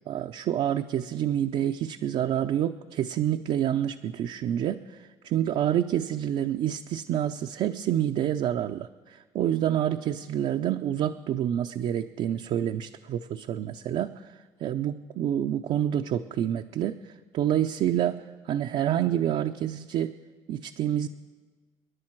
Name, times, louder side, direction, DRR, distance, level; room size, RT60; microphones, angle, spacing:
voice 1, 0.1-20.2 20.5-21.1, right 10 dB, 65° right, 4 dB, 0.6 m, -28 dB
28.5 x 10.5 x 4.6 m, 1.4 s
cardioid pair, 90°, 12 cm